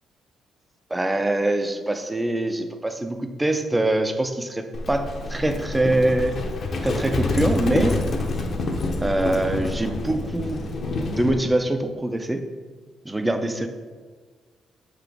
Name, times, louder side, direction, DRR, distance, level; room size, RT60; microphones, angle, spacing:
voice 1, 0.9-6.4 6.8-8.0 9.0-10.6 11.1-12.4 13.0-13.7, right 1 dB, 10° right, 7 dB, 0.4 m, -24 dB
Livestock farm animals working animals, 4.7-11.4, left 2 dB, 35° left, 0.7 m, -27 dB
6.5 x 6.0 x 3.4 m, 1.4 s
cardioid pair, 175°, 0 cm